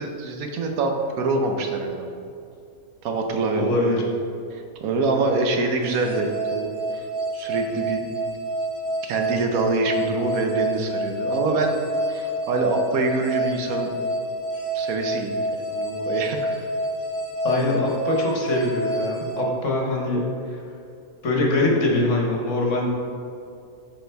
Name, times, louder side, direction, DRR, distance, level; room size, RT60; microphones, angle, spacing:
voice 1, 0.0-2.1 3.0-4.0 4.5-7.1 7.3-8.1 9.0-11.8 12.1-13.9 14.7-15.3 15.6-16.6, right 3 dB, 75° right, 3 dB, 1.2 m, -25 dB
voice 2, 3.5-4.0 17.4-20.2 21.2-22.9, left 2 dB, 60° left, -1 dB, 1.3 m, -23 dB
sound 1, 5.8-20.2, right 1 dB, 40° left, 0.9 m, -28 dB
9.1 x 4.4 x 3.4 m, 2.5 s
omnidirectional pair, 1.5 m